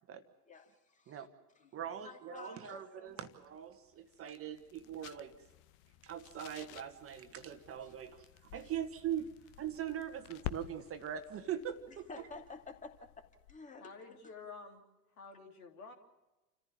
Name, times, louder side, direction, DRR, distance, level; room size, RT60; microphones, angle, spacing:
voice 1, 0.5-1.2 1.8-3.3 7.8-7.9 8.6-8.7 12.1-13.9, left 3 dB, 15° left, 5 dB, 2.5 m, -51 dB
voice 2, 1.7-5.3 6.0-12.1, right 9 dB, 30° right, 8 dB, 1.6 m, -41 dB
sound 1, 3.1-13.7, left 14 dB, 40° left, 0.9 m, -51 dB
voice 3, 13.8-14.8 15.2-15.9, left 4 dB, 65° left, 3 dB, 3.3 m, -50 dB
29.0 x 15.0 x 7.4 m, 1.1 s
figure-of-eight pair, 80°, 46 cm